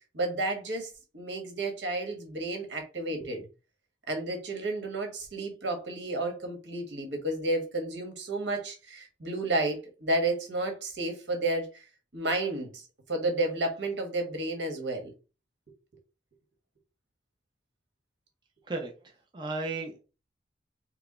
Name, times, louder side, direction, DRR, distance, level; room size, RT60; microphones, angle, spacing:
voice 1, 0.1-3.5 4.1-11.8 12.1-12.8 13.1-15.1, right 2 dB, 75° right, 1.5 m, -31 dB
voice 2, 18.6-20.0, right 3 dB, 25° right, 0.6 m, -35 dB
4.6 x 2.2 x 4.2 m
head